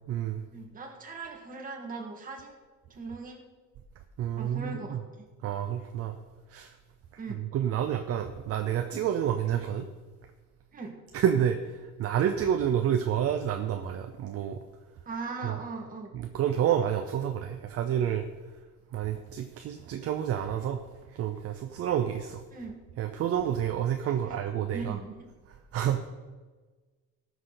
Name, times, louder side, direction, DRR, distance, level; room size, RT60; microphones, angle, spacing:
voice 1, 0.0-0.4 4.2-5.0 5.4-6.2 6.5-6.7 7.4-9.9 11.1-14.6 15.4-15.6 16.1-18.3 18.9-20.8 21.1-22.4 23.0-25.0 25.7-26.1, right 9 dB, 45° right, 6 dB, 0.7 m, -29 dB
voice 2, 0.5-2.6 2.9-3.4 4.4-5.0 7.2-7.4 10.7-11.0 15.1-16.1 22.5-22.8 24.2-24.3 24.7-25.3, right 3 dB, 25° right, 1 dB, 1.7 m, -39 dB
18.5 x 6.3 x 4.0 m, 1.3 s
cardioid pair, 180°, 32 cm